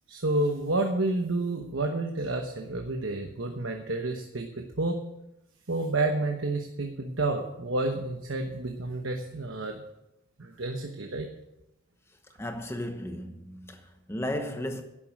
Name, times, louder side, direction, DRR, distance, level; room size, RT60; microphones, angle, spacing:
voice 1, 0.1-5.0 5.7-9.8 10.4-11.3, right 2 dB, 65° right, 1.1 m, -30 dB
voice 2, 12.4-14.8, left 1 dB, 10° left, 0.9 m, -34 dB
11.5 x 7.3 x 8.1 m
head